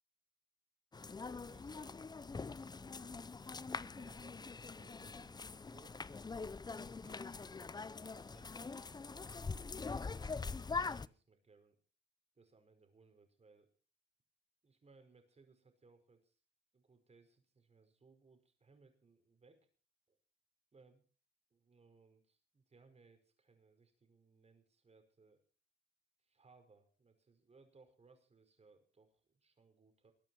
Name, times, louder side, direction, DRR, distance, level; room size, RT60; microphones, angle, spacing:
sound 1, 0.9-11.1, left 4 dB, 20° left, 0.6 m, -43 dB
voice 1, 1.3-2.0 2.3-6.0 6.7-9.3 9.7-11.8 12.4-13.7 14.6-16.4 16.7-19.7 20.1-20.2 20.7-21.0 21.5-25.4 26.2-30.1, right 4 dB, 30° right, 6 dB, 5.2 m, -66 dB
21.5 x 8.9 x 6.4 m, 0.40 s
cardioid pair, 90°, 20 cm